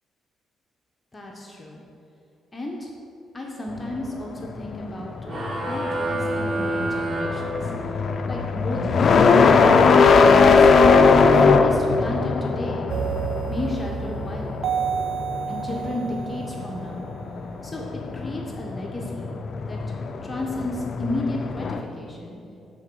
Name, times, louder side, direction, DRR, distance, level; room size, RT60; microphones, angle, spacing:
voice 1, 1.1-1.8 2.5-2.9 3.3-5.2 5.5-7.7 8.3-10.7 11.3-12.9 13.5-14.7 15.5-17.1 17.6-17.8 18.1-19.4 19.6-19.8 20.2-22.4, left 1 dB, 25° left, -1 dB, 0.9 m, -33 dB
sound 1, 3.8-21.8, left 4 dB, 50° left, 0.4 m, -20 dB
sound 2, 5.2-8.1, right 1 dB, 35° right, 1.2 m, -28 dB
sound 3, 12.9-17.6, right 8 dB, 65° right, 0.4 m, -31 dB
8.4 x 4.1 x 4.6 m, 2.7 s
cardioid pair, 90°, 0 cm